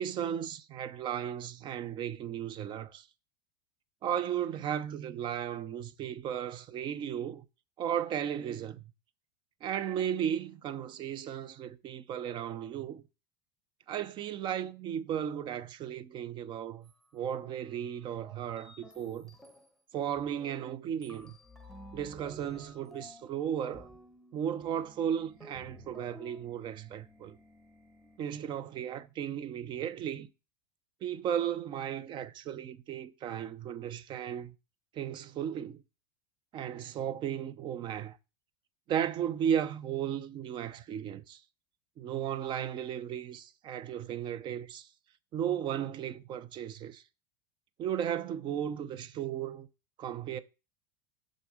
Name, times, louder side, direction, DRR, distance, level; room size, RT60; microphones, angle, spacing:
voice 1, 0.0-3.1 4.0-7.4 7.8-8.9 9.6-13.0 13.9-19.4 19.9-21.4 21.9-23.9 24.3-27.4 28.2-30.3 31.0-34.5 34.9-35.8 36.5-38.2 38.9-41.4 42.0-44.9 45.3-47.0 47.8-49.7 50.0-50.4, right 9 dB, 35° right, 0.7 m, -35 dB
sound 1, 16.8-17.0 17.5-17.6 18.1-19.7 20.2-20.7 21.0-28.2, equal, ahead, 0.9 m, -54 dB
6.5 x 5.4 x 4.9 m
supercardioid pair, 130°, 14 cm